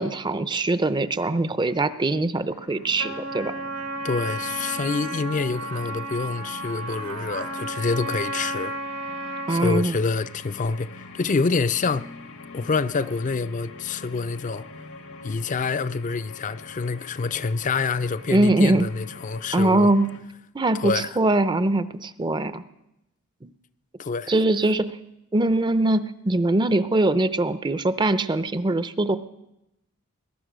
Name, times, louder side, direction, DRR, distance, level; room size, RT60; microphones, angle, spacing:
voice 1, 0.0-3.5 9.5-10.0 18.3-18.9 19.5-20.1 20.5-22.6 23.4-23.5 24.3-25.0 25.3-29.2, right 2 dB, 20° right, 0.5 m, -22 dB
sound 1, 2.5-20.2, left 3 dB, 80° left, 1.5 m, -44 dB
Trumpet, 3.0-9.9, right 2 dB, 90° right, 2.0 m, -33 dB
voice 2, 4.0-8.7 9.5-12.1 12.5-14.7 15.2-19.9 20.8-21.1 24.0-24.3, left 4 dB, 35° left, 0.5 m, -26 dB
21.0 x 11.0 x 6.2 m
head